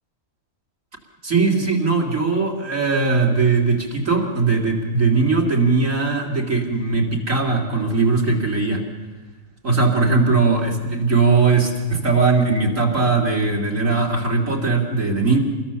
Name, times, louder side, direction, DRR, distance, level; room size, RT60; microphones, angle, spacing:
voice 1, 1.2-8.8 9.6-15.4, right 4 dB, 60° right, 0 dB, 2.9 m, -19 dB
27.0 x 21.5 x 7.0 m, 1.3 s
omnidirectional pair, 1.5 m